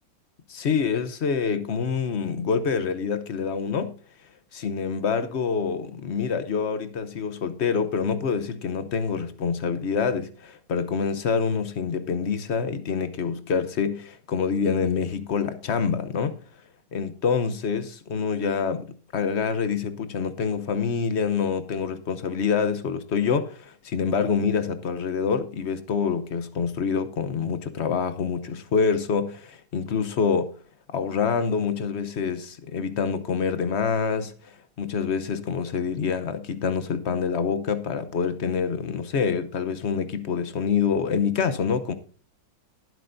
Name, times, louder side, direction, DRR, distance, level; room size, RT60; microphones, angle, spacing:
voice 1, 0.5-3.9 4.5-16.3 16.9-18.9 19.1-30.5 30.9-41.9, left 6 dB, 50° left, 0.8 m, -26 dB
20.0 x 7.8 x 2.6 m
omnidirectional pair, 2.0 m